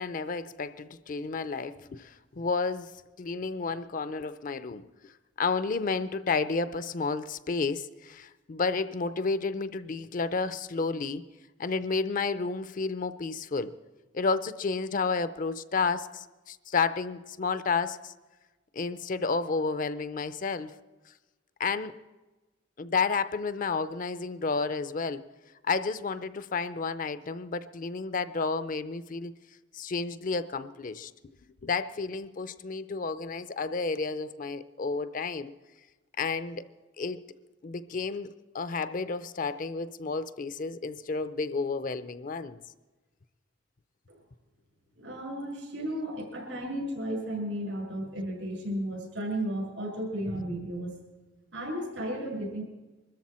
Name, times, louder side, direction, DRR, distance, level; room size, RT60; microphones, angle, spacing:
voice 1, 0.0-2.9 3.2-5.1 5.4-11.3 11.6-13.7 14.1-18.1 18.7-20.7 21.6-21.9 22.8-25.2 25.7-29.3 29.7-31.1 31.6-35.5 36.2-36.7 37.0-37.2 37.6-42.6, left 4 dB, 45° left, 13 dB, 0.5 m, -31 dB
voice 2, 45.0-51.0 51.5-52.6, right 1 dB, 85° right, 1 dB, 5.6 m, -34 dB
23.5 x 13.5 x 4.3 m, 1.2 s
head